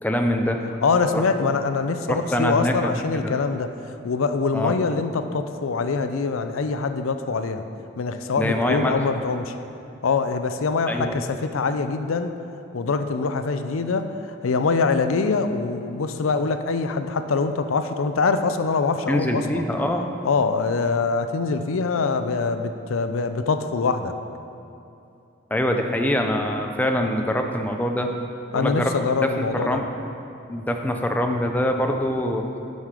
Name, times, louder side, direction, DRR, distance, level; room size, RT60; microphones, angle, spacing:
voice 1, 0.0-0.6 1.1-1.2 2.1-3.3 4.5-4.7 8.4-9.1 10.9-11.2 19.1-20.1 25.5-28.1 28.5-28.9 29.2-29.9 30.5-32.5, left 1 dB, 10° left, 3 dB, 0.5 m, -24 dB
voice 2, 0.8-3.7 4.0-7.6 8.0-9.5 10.0-12.3 12.7-19.6 20.2-24.1 28.5-29.8, left 4 dB, 85° left, 9 dB, 0.5 m, -24 dB
9.2 x 6.5 x 4.9 m, 2.7 s
head